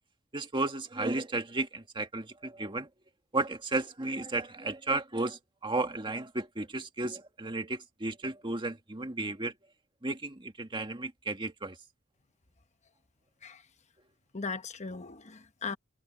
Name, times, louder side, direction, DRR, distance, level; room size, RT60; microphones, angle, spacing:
voice 1, 0.3-2.9 3.3-9.5 10.0-11.8, right 2 dB, 25° right, 1.7 m, -33 dB
voice 2, 14.3-15.8, left 4 dB, 35° left, 1.0 m, -38 dB
head